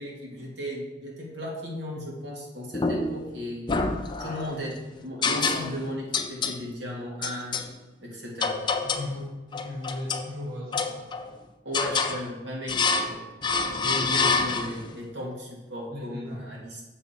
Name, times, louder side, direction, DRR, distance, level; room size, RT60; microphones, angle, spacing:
voice 1, 0.0-3.8 4.2-7.6 8.0-8.6 11.6-13.2 13.8-16.8, equal, 80° right, -3 dB, 2.1 m, -36 dB
sound 1, 2.7-3.3 3.7-4.6 5.2-5.9 6.1-6.6 7.2-7.7 8.4-9.1 9.5-10.3 10.7-11.3 11.7-12.2 12.7-13.2 13.4-14.9, left 4 dB, 25° left, 0.5 m, -27 dB
voice 2, 8.9-11.0 15.9-16.5, left 1 dB, 60° right, -6 dB, 1.7 m, -36 dB
7.0 x 6.8 x 4.3 m, 1.2 s
head